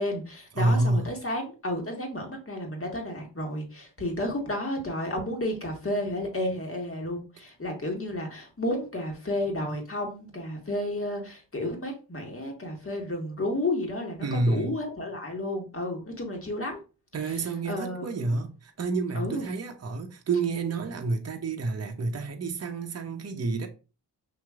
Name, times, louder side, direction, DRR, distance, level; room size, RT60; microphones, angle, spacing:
voice 1, 0.0-16.8 17.3-17.4 17.7-18.4 19.1-19.5, left 1 dB, 30° left, 1.6 m, -32 dB
voice 2, 0.6-1.1 14.2-14.8 17.1-23.7, right 3 dB, 35° right, 0.8 m, -29 dB
5.9 x 2.9 x 2.4 m
cardioid pair, 50°, 42 cm